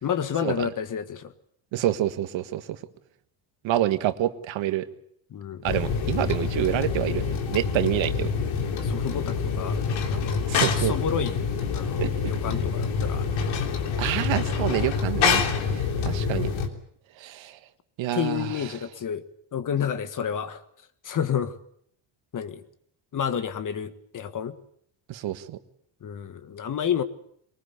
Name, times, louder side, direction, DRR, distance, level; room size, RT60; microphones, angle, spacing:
voice 1, 0.0-1.3 5.3-5.6 8.6-10.4 10.7-11.4 11.7-13.3 18.1-19.2 19.5-20.6 21.0-21.6 22.3-22.6 23.1-24.6 26.0-27.0, left 8 dB, 40° left, 11 dB, 1.6 m, -30 dB
voice 2, 1.7-2.8 3.6-4.9 5.6-8.3 10.5-10.9 12.0-12.3 14.0-15.4 15.7-16.5 17.2-17.6 18.0-18.5 25.1-25.6, right 13 dB, 70° right, 10 dB, 1.6 m, -27 dB
sound 1, 5.7-16.7, left 5 dB, 75° left, 3.4 m, -26 dB
23.0 x 20.0 x 8.2 m, 0.66 s
cardioid pair, 135°, 47 cm